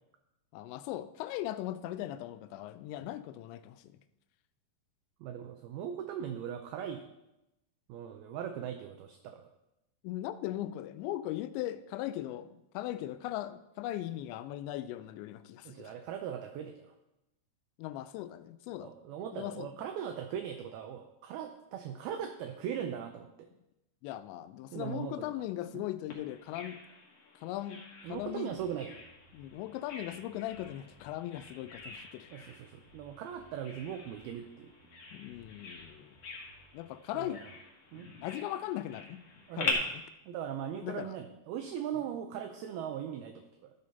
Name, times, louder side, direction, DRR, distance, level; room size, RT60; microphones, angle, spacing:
voice 1, 0.5-3.8 10.0-15.9 17.8-19.0 19.3-19.7 24.0-26.8 27.4-27.8 28.1-28.5 29.3-32.3 35.1-36.2 36.7-37.4 38.2-39.2 39.6-39.8 40.8-41.1, left 13 dB, 85° left, 12 dB, 2.8 m, -39 dB
voice 2, 5.2-7.0 7.9-9.5 15.7-16.9 18.8-23.5 24.7-25.4 25.7-25.8 28.0-29.0 32.3-34.7 37.1-37.5 37.9-38.1 39.5-39.8 40.3-43.7, right 9 dB, 90° right, 6 dB, 2.1 m, -39 dB
Bird vocalization bird call bird song, 26.1-39.7, left 4 dB, 55° left, 1.7 m, -44 dB
sound 1, 28.0-37.6, right 1 dB, 60° right, 2.0 m, -63 dB
13.5 x 6.4 x 4.0 m, 0.93 s
omnidirectional pair, 5.1 m